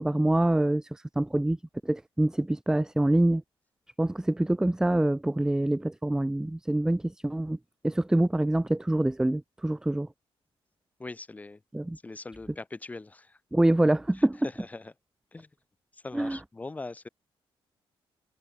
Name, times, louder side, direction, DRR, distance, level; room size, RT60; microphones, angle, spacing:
voice 1, 0.0-1.6 1.8-3.4 4.0-7.6 7.8-10.1 11.7-12.0 13.5-14.5 16.1-16.4, right 1 dB, 5° right, 0.7 m, -25 dB
voice 2, 11.0-11.6 12.0-13.4 14.2-14.3 14.6-14.9 15.3-15.5 15.9-17.1, left 3 dB, 15° left, 2.8 m, -41 dB
cardioid pair, 160°, 10 cm